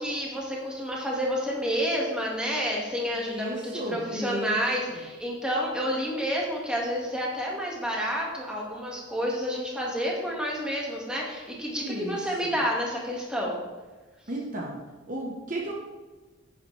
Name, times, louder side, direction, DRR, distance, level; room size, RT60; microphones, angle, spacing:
voice 1, 0.0-13.6, equal, 5° right, -3 dB, 1.7 m, -29 dB
voice 2, 3.1-4.6 4.9-5.0 11.8-12.5 14.3-14.8 15.1-15.7, right 1 dB, 40° right, -1 dB, 1.1 m, -34 dB
10.0 x 8.3 x 3.3 m, 1.3 s
head